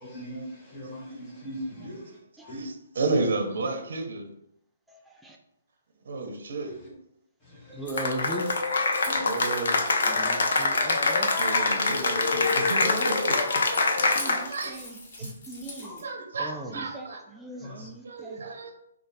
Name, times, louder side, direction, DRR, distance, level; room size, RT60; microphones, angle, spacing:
voice 1, 0.0-2.0 2.4-2.7 6.6-6.7 7.5-7.9 9.1-9.2 10.0-10.1 14.2-14.4 15.8-16.0 17.6-17.9, equal, 10° left, -6 dB, 1.2 m, -40 dB
voice 2, 2.5-4.3 6.0-6.7 9.1-9.8 11.3-13.6 14.5-14.8 15.2-15.3 16.0-17.2 17.5-18.7, right 3 dB, 65° right, 5 dB, 0.7 m, -32 dB
voice 3, 7.7-8.5 10.1-11.3 12.8-13.1 14.1-16.0 16.4-18.4, right 1 dB, 5° right, 0 dB, 0.4 m, -38 dB
Keys jangling, 7.9-16.0, left 2 dB, 40° left, 1.3 m, -44 dB
Cheering / Applause, 8.0-14.7, left 3 dB, 65° left, 0.6 m, -25 dB
3.1 x 2.4 x 4.0 m, 0.78 s
hypercardioid pair, 160°, 0 cm